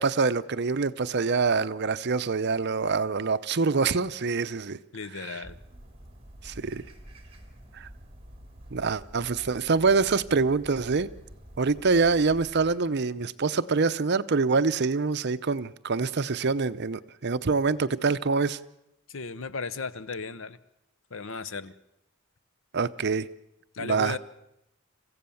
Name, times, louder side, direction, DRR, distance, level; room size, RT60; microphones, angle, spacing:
voice 1, 0.0-4.8 5.2-5.4 6.4-6.8 7.7-7.9 8.7-11.1 11.6-18.6 22.7-23.3 23.8-24.2, right 4 dB, 55° right, 0.7 m, -25 dB
voice 2, 4.9-5.6 19.1-20.6 21.1-21.7 23.7-24.2, left 4 dB, 70° left, 0.9 m, -35 dB
sound 1, 5.4-12.8, right 1 dB, 25° right, 3.4 m, -48 dB
27.5 x 15.5 x 7.1 m
head